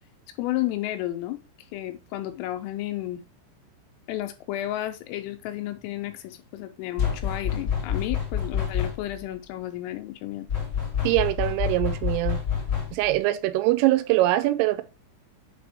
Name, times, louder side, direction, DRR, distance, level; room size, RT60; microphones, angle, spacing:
voice 1, 0.4-1.4 1.7-3.2 4.1-10.5, left 14 dB, 85° left, 3.5 m, -32 dB
sound 1, 7.0-9.2 10.5-13.2, left 8 dB, 25° left, 2.3 m, -28 dB
voice 2, 11.0-12.4 12.9-14.8, right 16 dB, 85° right, 3.2 m, -23 dB
7.7 x 3.5 x 3.5 m
omnidirectional pair, 5.8 m